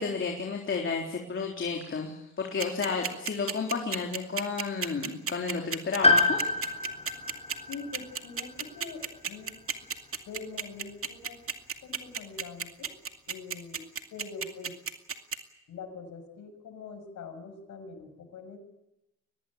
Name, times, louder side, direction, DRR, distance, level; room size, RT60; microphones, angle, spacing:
voice 1, 0.0-6.5, left 5 dB, 40° left, 1 dB, 3.7 m, -32 dB
sound 1, 2.6-15.4, right 6 dB, 45° right, 2.4 m, -32 dB
Piano, 6.0-9.9 10.2-10.3 11.4-11.5, left 2 dB, 20° left, 6.0 m, -28 dB
voice 2, 7.7-9.6 10.3-11.4 11.8-12.9 13.3-13.8 14.1-14.8 15.7-18.6, left 4 dB, 70° left, 6 dB, 6.7 m, -43 dB
23.5 x 19.0 x 8.9 m, 0.91 s
cardioid pair, 90°, 30 cm